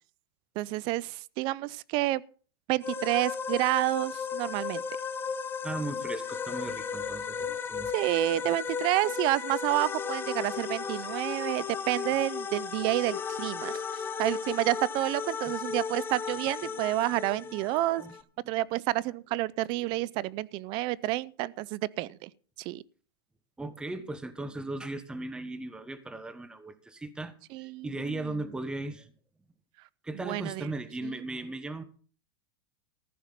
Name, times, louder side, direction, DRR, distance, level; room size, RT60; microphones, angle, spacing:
voice 1, 0.6-2.2 2.7-4.8 7.9-18.0 18.5-22.3 22.6-22.8 27.5-28.4 30.2-30.7 31.0-31.2, right 18 dB, 40° right, 0.5 m, -29 dB
sound 1, 2.8-18.2, left 6 dB, 15° left, 0.8 m, -35 dB
voice 2, 5.6-7.9 8.3-8.5 12.1-12.2 15.5-15.6 16.3-16.4 16.7-16.8 17.4-18.1 18.4-18.5 23.6-29.1 30.0-31.8, right 2 dB, 5° right, 1.1 m, -38 dB
14.5 x 5.8 x 7.4 m
supercardioid pair, 140°, 13 cm